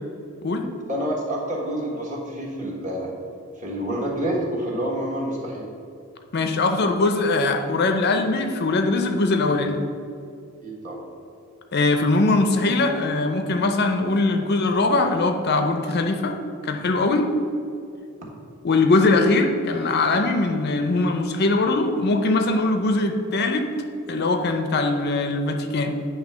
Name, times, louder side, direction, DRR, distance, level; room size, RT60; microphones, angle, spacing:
voice 1, 0.9-3.1 3.6-5.7 10.6-11.0, right 1 dB, 35° right, -3 dB, 1.5 m, -28 dB
voice 2, 6.3-9.8 11.7-16.4 16.6-17.3 18.6-23.7 24.1-26.0, left 2 dB, 45° left, 5 dB, 0.5 m, -21 dB
8.9 x 3.3 x 6.1 m, 2.5 s
head